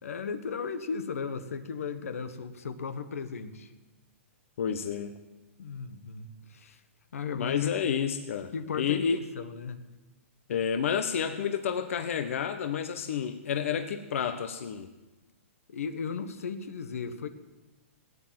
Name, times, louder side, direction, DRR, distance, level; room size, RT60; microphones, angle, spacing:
voice 1, 0.0-3.7 5.6-6.8 7.1-7.7 8.5-9.8 15.7-17.3, left 5 dB, 85° left, 10 dB, 1.4 m, -36 dB
voice 2, 4.6-5.1 7.3-8.5 8.8-9.2 10.5-14.9, left 7 dB, 70° left, 7 dB, 1.1 m, -30 dB
18.0 x 9.8 x 7.7 m, 1.1 s
hypercardioid pair, 145°, 7 cm